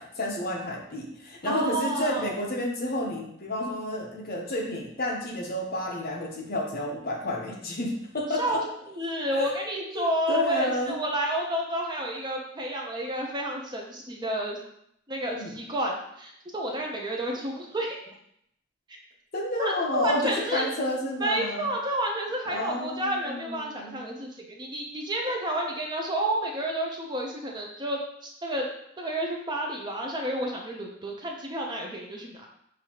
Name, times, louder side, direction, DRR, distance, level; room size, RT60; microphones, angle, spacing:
voice 1, 0.0-8.6 9.3-9.5 9.9-11.0 15.3-15.5 19.3-21.6 22.5-24.1, left 1 dB, 45° left, 0 dB, 0.8 m, -30 dB
voice 2, 1.4-2.3 8.4-14.6 15.1-18.0 19.6-20.7 21.2-28.7 29.0-32.5, right 1 dB, 20° right, 0 dB, 0.6 m, -30 dB
6.3 x 2.7 x 2.9 m, 0.73 s
head